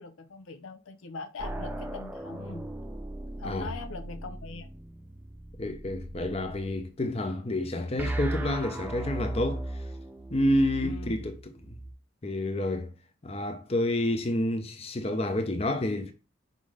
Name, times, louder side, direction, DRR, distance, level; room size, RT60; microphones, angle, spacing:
voice 1, 0.0-2.6 3.4-4.7 10.8-11.1, left 3 dB, 90° left, 0.6 m, -41 dB
sound 1, 1.4-6.7 8.0-11.9, right 1 dB, 10° right, 0.6 m, -37 dB
voice 2, 5.6-9.8 10.3-11.3 11.7-11.8 12.2-12.9 13.2-16.1, left 1 dB, 30° left, 0.6 m, -29 dB
5.2 x 3.9 x 4.8 m
head